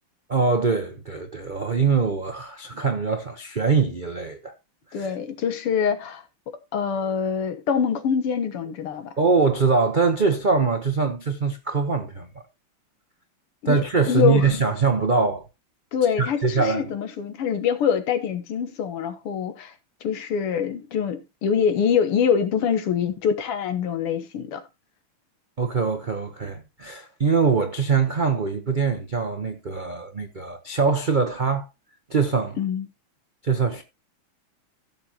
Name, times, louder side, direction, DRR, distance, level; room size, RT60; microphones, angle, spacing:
voice 1, 0.3-4.5 4.9-5.1 9.2-12.3 13.6-15.4 16.2-16.9 25.6-31.7 32.1-32.6 33.4-33.8, right 5 dB, 70° right, 0.4 m, -23 dB
voice 2, 4.9-6.2 6.7-9.1 13.6-13.8 14.1-14.5 15.9-19.7 20.0-24.6 32.6-32.9, left 7 dB, 85° left, 2.2 m, -24 dB
15.5 x 7.0 x 2.9 m
omnidirectional pair, 2.4 m